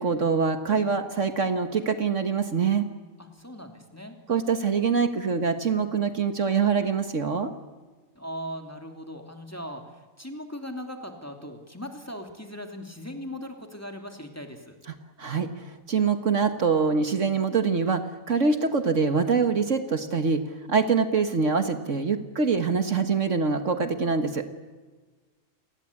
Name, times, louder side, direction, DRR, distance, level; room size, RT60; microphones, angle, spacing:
voice 1, 0.0-2.9 4.3-7.5 15.2-20.4 20.7-24.5, right 5 dB, 60° right, 8 dB, 1.8 m, -24 dB
voice 2, 3.2-4.2 8.1-14.7, equal, 10° left, 4 dB, 2.8 m, -39 dB
27.5 x 20.0 x 8.6 m, 1.3 s
omnidirectional pair, 1.5 m